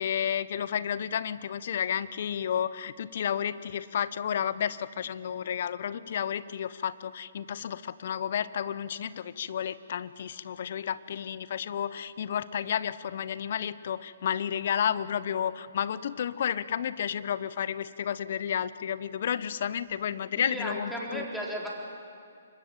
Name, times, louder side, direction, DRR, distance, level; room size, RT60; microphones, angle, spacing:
voice 1, 0.0-21.2, left 9 dB, 55° left, 17 dB, 0.9 m, -31 dB
voice 2, 20.4-21.7, equal, ahead, -3 dB, 4.2 m, -35 dB
25.0 x 21.5 x 9.0 m, 2.2 s
figure-of-eight pair, 135°, 0 cm